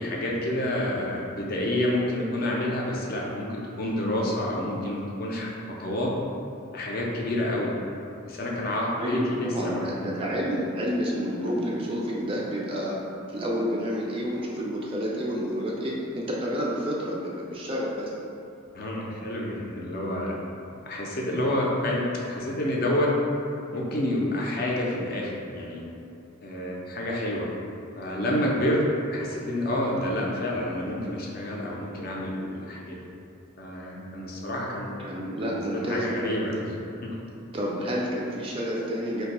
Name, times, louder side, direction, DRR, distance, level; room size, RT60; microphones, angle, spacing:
voice 1, 0.0-6.1 6.7-7.7 8.3-10.1 18.7-20.3 20.8-22.0 22.3-23.1 23.7-25.9 26.4-27.5 28.0-28.8 29.1-33.0 33.6-34.9 35.4-36.7 37.0-37.1, left 1 dB, 45° left, -3 dB, 0.4 m, -28 dB
voice 2, 8.9-13.0 13.3-18.1 35.0-36.7 37.5-39.3, equal, 25° right, -3 dB, 0.3 m, -29 dB
2.5 x 2.2 x 4.0 m, 2.7 s
head